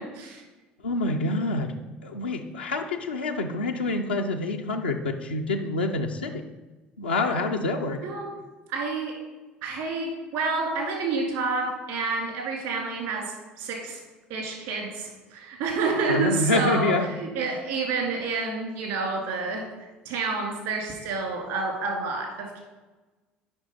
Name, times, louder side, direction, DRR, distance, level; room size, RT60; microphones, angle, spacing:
voice 1, 0.8-1.7 2.0-6.4 7.0-8.1 16.1-17.1, left 2 dB, 90° left, 2 dB, 0.5 m, -27 dB
voice 2, 8.7-9.1 9.6-13.2 13.6-14.0 14.3-16.9 17.2-19.6 20.1-22.6, right 4 dB, 70° right, 1 dB, 2.1 m, -29 dB
7.8 x 5.6 x 4.1 m, 1.2 s
hypercardioid pair, 60°, 5 cm